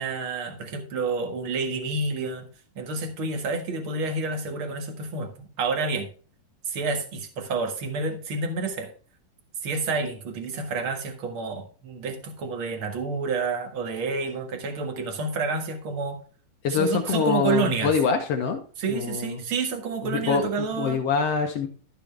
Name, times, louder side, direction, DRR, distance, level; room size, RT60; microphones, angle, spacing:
voice 1, 0.0-2.5 2.8-6.1 6.7-8.9 9.6-16.2 16.6-17.9 18.8-21.0, right 4 dB, 45° right, 4 dB, 1.8 m, -29 dB
voice 2, 16.6-18.6 18.9-19.4 20.0-20.5 20.8-21.7, left 6 dB, 85° left, 5 dB, 1.3 m, -24 dB
13.0 x 6.9 x 3.4 m, 0.39 s
omnidirectional pair, 4.2 m